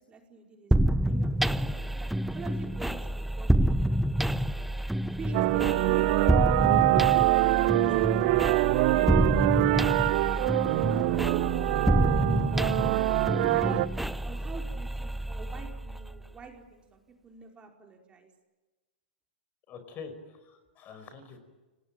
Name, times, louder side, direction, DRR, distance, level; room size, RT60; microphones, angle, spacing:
voice 1, 0.1-4.7 5.2-9.0 9.6-12.4 13.5-13.8 14.2-18.3, right 4 dB, 20° right, 2 dB, 4.9 m, -47 dB
sound 1, 0.7-16.3, right 1 dB, ahead, 0.8 m, -28 dB
sound 2, 5.3-13.9, right 19 dB, 50° right, 0.9 m, -24 dB
voice 2, 19.7-21.4, left 5 dB, 35° left, 10 dB, 5.1 m, -45 dB
29.5 x 19.5 x 9.1 m, 1.2 s
hypercardioid pair, 120°, 5 cm